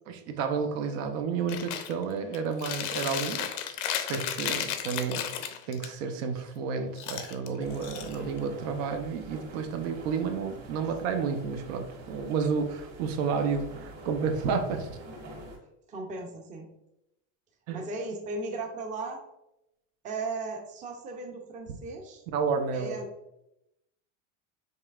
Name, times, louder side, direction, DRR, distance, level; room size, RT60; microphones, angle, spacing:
voice 1, 0.1-3.8 4.1-5.3 5.7-15.0 17.7-17.8 22.3-23.0, right 5 dB, 75° right, 6 dB, 0.7 m, -31 dB
Chewing mastication, 1.5-1.9 2.3-5.9 7.0-8.5, left 9 dB, 65° left, 0.6 m, -34 dB
sound 1, 7.6-15.6, right 1 dB, 45° right, 1.5 m, -45 dB
voice 2, 15.9-16.7 17.7-19.2 20.0-22.2 22.7-23.1, right 3 dB, 20° right, 2 dB, 0.5 m, -36 dB
5.4 x 3.3 x 2.4 m, 0.85 s
cardioid pair, 150°, 38 cm